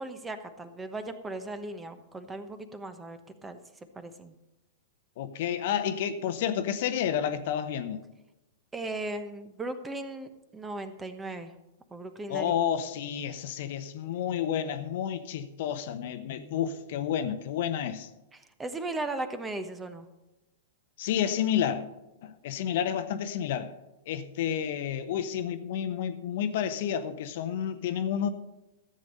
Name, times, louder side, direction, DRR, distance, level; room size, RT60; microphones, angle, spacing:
voice 1, 0.0-3.6 3.9-4.3 8.7-11.5 11.9-12.5 18.3-20.1, right 2 dB, 15° right, 1.1 m, -37 dB
voice 2, 5.2-8.0 12.3-18.1 21.0-21.8 22.2-23.8 24.1-28.3, left 9 dB, 55° left, 0.9 m, -30 dB
14.0 x 7.9 x 5.4 m
figure-of-eight pair, 105°, 0 cm